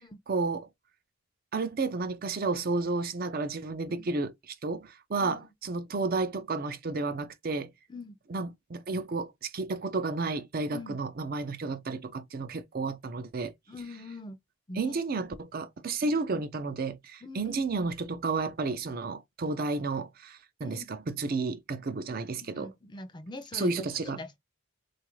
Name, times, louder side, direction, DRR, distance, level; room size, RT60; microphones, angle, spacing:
voice 1, 0.3-0.7 1.5-7.7 8.3-13.5 14.8-22.7 23.5-24.2, right 3 dB, 45° right, 0.5 m, -32 dB
voice 2, 10.7-11.0 13.7-14.4 14.7-15.0 16.0-16.4 17.2-17.6 20.6-20.9 22.4-24.4, left 2 dB, 20° left, 0.5 m, -43 dB
3.9 x 2.4 x 3.0 m
head